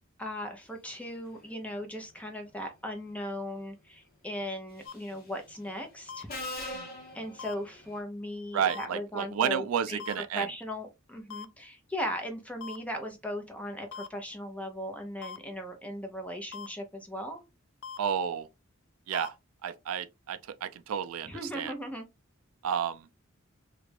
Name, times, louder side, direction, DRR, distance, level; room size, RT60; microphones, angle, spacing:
voice 1, 0.2-6.3 7.1-17.4 21.2-22.1, equal, 5° left, 0.6 m, -38 dB
Subway metro underground, 4.8-5.2 6.3-8.0, left 1 dB, 45° left, 1.0 m, -40 dB
sound 1, 4.9-5.0 6.1-6.2 7.4-7.5 8.7-8.9 10.0-10.1 11.3-11.5 12.6-12.8 13.9-14.1 15.2-15.4 16.5-16.7 17.8-18.0 19.1-19.3, left 6 dB, 60° left, 0.4 m, -41 dB
voice 2, 8.5-10.5 18.0-18.5 19.1-19.4 19.6-21.7 22.6-23.1, right 8 dB, 85° right, 0.4 m, -31 dB
3.2 x 2.4 x 3.3 m
head